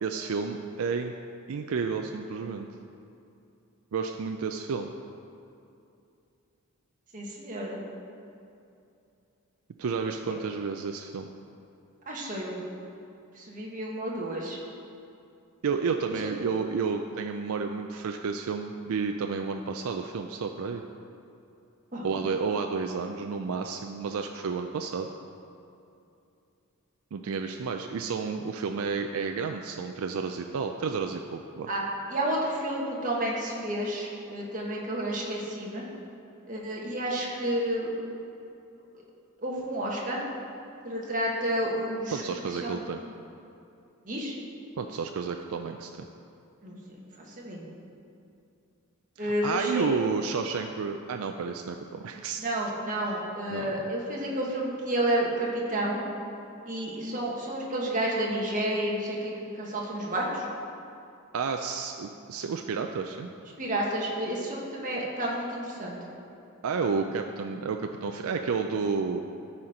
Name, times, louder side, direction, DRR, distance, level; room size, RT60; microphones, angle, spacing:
voice 1, 0.0-1.1 1.5-2.7 3.9-4.9 9.8-11.3 15.6-20.8 22.0-25.1 27.1-31.7 42.1-43.0 44.8-46.1 49.2-52.4 53.5-53.7 61.3-63.3 66.6-69.2, right 5 dB, 75° right, 4 dB, 0.4 m, -31 dB
voice 2, 7.1-7.8 10.2-10.3 12.1-12.6 13.4-14.6 21.9-22.3 31.7-31.8 32.1-35.8 36.5-37.9 39.4-40.2 40.8-42.2 42.5-42.8 44.0-44.3 46.6-46.8 47.4-47.6 49.2-49.8 52.4-56.0 56.7-59.3 59.6-60.5 63.6-66.0, right 1 dB, 40° right, -3 dB, 1.5 m, -30 dB
13.0 x 4.4 x 5.0 m, 2.6 s
head